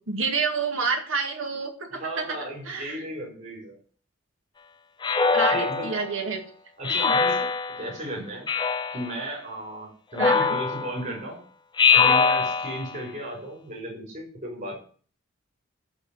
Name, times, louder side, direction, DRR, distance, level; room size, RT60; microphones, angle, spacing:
voice 1, 0.1-2.4 2.7-3.0 5.3-6.4 7.0-7.1 10.2-10.5, right 4 dB, 75° right, 3 dB, 2.1 m, -28 dB
voice 2, 1.9-3.8 5.5-5.9 6.8-7.5 7.7-8.5 8.9-11.4 11.9-14.8, right 1 dB, 40° right, -1 dB, 5.8 m, -35 dB
Speech synthesizer, 5.0-6.1 6.8-7.9 8.5-9.1 10.1-11.1 11.8-12.9, left 5 dB, 20° left, 0.7 m, -22 dB
11.0 x 4.4 x 7.9 m, 0.43 s
head